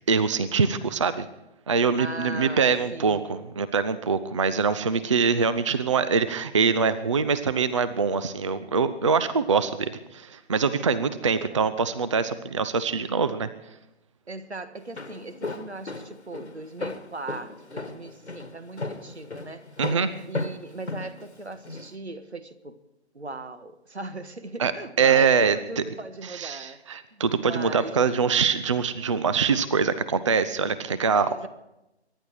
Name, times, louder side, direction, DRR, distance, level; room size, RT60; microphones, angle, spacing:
voice 1, 0.1-1.3 1.7-13.5 19.8-20.2 24.6-24.7 25.0-25.8 26.2-31.4, right 5 dB, 30° right, 0.5 m, -24 dB
voice 2, 2.0-3.3 11.1-11.2 11.5-11.7 14.3-19.7 20.3-22.8 23.1-26.8 27.1-28.1 31.3-31.5, right 2 dB, 75° right, 1.6 m, -39 dB
Walk footsteps, 14.8-21.9, left 3 dB, 80° left, 1.7 m, -35 dB
24.0 x 11.0 x 4.7 m
figure-of-eight pair, 140°, 33 cm